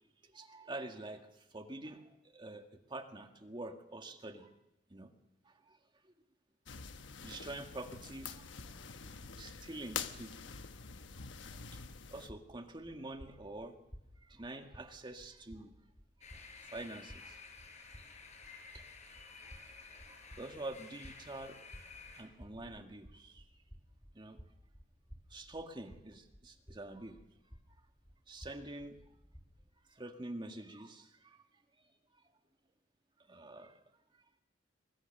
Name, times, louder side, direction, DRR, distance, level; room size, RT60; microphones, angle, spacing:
voice 1, 0.2-4.5 4.9-5.1 5.5-5.8 6.0-6.1 7.2-8.8 9.4-10.6 11.7-11.8 12.1-13.8 14.2-15.7 16.2-16.4 16.6-17.4 18.7-19.2 20.1-21.7 22.1-23.5 24.1-24.4 25.3-27.2 28.3-29.0 29.9-31.4 33.2-33.8, right 2 dB, 25° right, 5 dB, 1.9 m, -47 dB
sound 1, 6.7-12.3, left 6 dB, 80° left, 1.1 m, -46 dB
sound 2, 12.3-29.7, equal, 10° left, 3.8 m, -57 dB
sound 3, 16.2-22.2, left 4 dB, 40° left, 4.7 m, -53 dB
24.0 x 21.5 x 6.7 m, 0.88 s
head